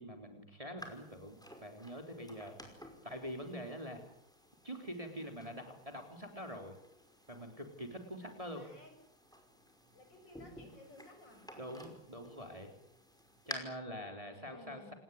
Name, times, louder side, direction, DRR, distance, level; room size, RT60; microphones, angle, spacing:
voice 1, 0.0-2.6 3.0-4.0 4.6-6.8 7.3-8.7 11.6-12.7 13.5-14.9, equal, 15° right, 5 dB, 3.6 m, -45 dB
sound 1, 0.8-13.5, equal, ahead, 5.3 m, -54 dB
voice 2, 8.5-8.9 9.9-11.5 14.0-14.9, left 2 dB, 55° left, 4 dB, 8.2 m, -56 dB
28.0 x 19.5 x 9.4 m, 0.70 s
omnidirectional pair, 2.3 m